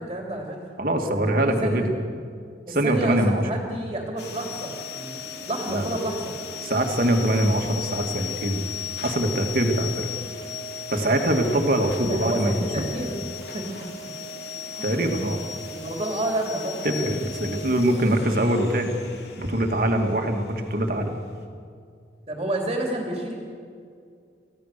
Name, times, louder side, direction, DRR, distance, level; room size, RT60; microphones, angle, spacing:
voice 1, 0.0-0.6 1.0-1.9 2.7-6.3 12.1-13.2 13.5-13.7 14.8-15.0 15.6-17.7 20.0-20.1 22.3-23.4, right 1 dB, 30° right, 0 dB, 3.2 m, -30 dB
voice 2, 0.8-1.9 2.7-3.4 5.7-6.0 6.6-8.6 9.0-10.1 10.9-12.8 14.8-15.4 16.8-18.9 19.4-21.2, right 1 dB, 50° right, 4 dB, 2.2 m, -23 dB
sound 1, 4.2-21.4, left 6 dB, 70° left, 2.6 m, -36 dB
28.0 x 16.0 x 6.8 m, 2.3 s
head